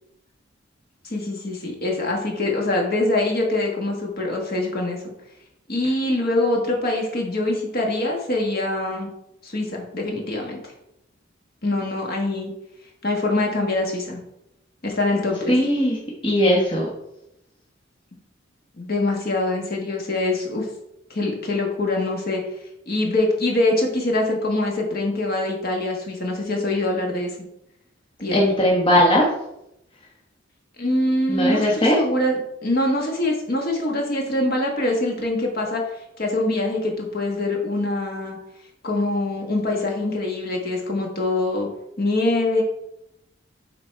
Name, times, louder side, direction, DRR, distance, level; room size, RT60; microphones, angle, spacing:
voice 1, 1.0-5.0 5.7-9.1 9.4-10.7 11.6-12.5 13.0-14.2 14.8-15.5 18.8-20.7 21.1-22.4 22.9-27.4 28.2-28.4 30.8-32.3 32.6-35.8 36.2-38.4 38.8-41.7 42.0-42.6, left 2 dB, 50° left, 0 dB, 1.5 m, -24 dB
voice 2, 15.5-16.9 28.3-29.2 31.3-32.0, equal, 25° left, -3 dB, 1.1 m, -18 dB
7.4 x 4.0 x 4.6 m, 0.83 s
head